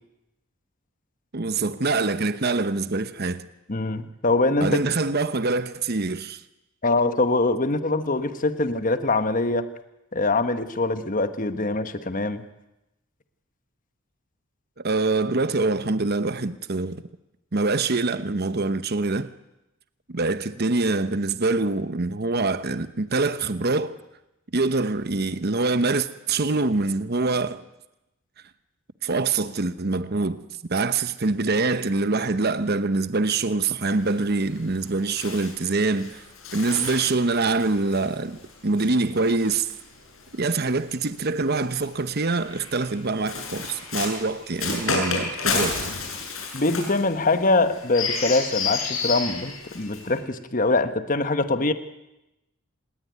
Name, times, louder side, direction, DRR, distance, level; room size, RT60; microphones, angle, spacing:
voice 1, 1.3-3.5 4.6-6.4 14.8-17.0 17.5-19.3 20.1-24.0 24.5-27.6 29.0-30.4 30.7-36.2 36.5-39.7 40.3-45.8, right 3 dB, 50° right, 1.0 m, -25 dB
voice 2, 3.7-4.8 6.8-9.7 10.1-12.4 46.5-51.7, left 2 dB, 40° left, 1.3 m, -23 dB
Bird, 33.9-40.5 41.4-50.2, left 4 dB, 70° left, 7.6 m, -32 dB
27.5 x 21.0 x 9.5 m
head